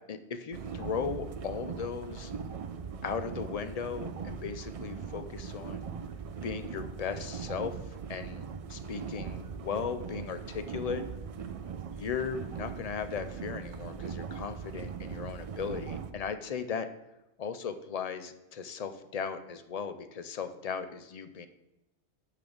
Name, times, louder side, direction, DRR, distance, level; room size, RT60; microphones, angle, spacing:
voice 1, 0.0-2.3 3.0-5.9 6.4-11.0 11.9-16.9 17.4-21.5, left 6 dB, 50° left, 10 dB, 0.5 m, -37 dB
sound 1, 0.5-16.1, right 6 dB, 60° right, 0.3 m, -40 dB
6.0 x 5.8 x 5.0 m, 0.94 s
omnidirectional pair, 1.1 m